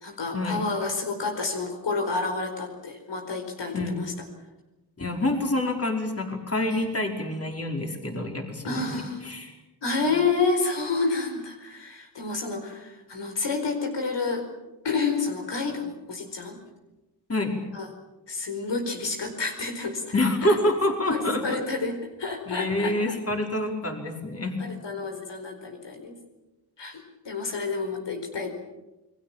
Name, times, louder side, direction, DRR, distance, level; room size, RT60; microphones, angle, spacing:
voice 1, 0.0-4.1 6.7-6.8 8.6-9.3 9.8-14.4 14.8-16.6 17.7-17.9 18.3-20.0 20.4-20.6 21.1-23.2 24.6-26.1 26.8-28.5, left 4 dB, 75° left, 4 dB, 4.7 m, -29 dB
voice 2, 5.0-9.5 17.3-17.6 20.1-21.6 22.5-24.6, left 1 dB, 35° left, 3 dB, 4.9 m, -27 dB
29.0 x 21.0 x 7.4 m, 1.0 s
cardioid pair, 75°, 43 cm